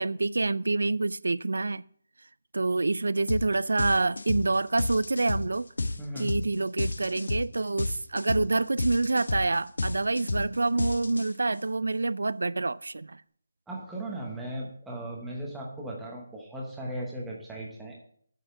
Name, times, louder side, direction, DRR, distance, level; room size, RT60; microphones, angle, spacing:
voice 1, 0.0-1.8 2.5-5.7 6.2-13.2, right 3 dB, 80° right, 0.3 m, -27 dB
sound 1, 3.3-3.5 3.8-11.6, left 2 dB, 85° left, 1.1 m, -31 dB
voice 2, 6.0-6.3 13.7-18.0, right 1 dB, 5° right, 1.0 m, -37 dB
7.9 x 6.4 x 6.8 m
hypercardioid pair, 180°, 0 cm